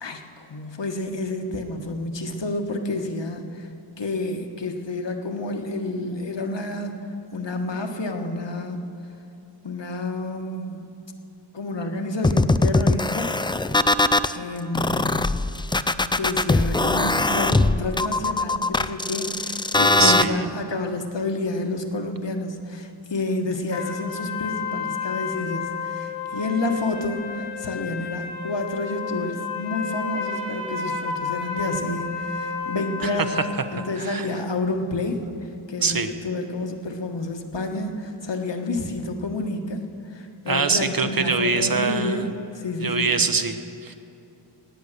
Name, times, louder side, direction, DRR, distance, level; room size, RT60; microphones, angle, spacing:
voice 1, 0.0-3.7 4.0-6.9 7.3-8.9 9.6-10.9 11.5-13.3 14.3-15.3 16.2-33.4 33.7-35.2 35.7-39.8 40.0-42.3 42.5-43.1, left 2 dB, 60° left, 4 dB, 1.5 m, -29 dB
sound 1, 12.2-14.3 14.7-20.2, left 2 dB, 10° left, 0.3 m, -21 dB
voice 2, 20.0-20.5 33.0-33.4 34.0-34.3 35.8-36.1 40.5-42.3 42.8-43.9, right 4 dB, 45° right, 9 dB, 1.1 m, -24 dB
sound 2, 23.7-33.6, left 5 dB, 90° left, 2.4 m, -31 dB
19.0 x 8.5 x 6.8 m, 2.8 s
cardioid pair, 50°, 49 cm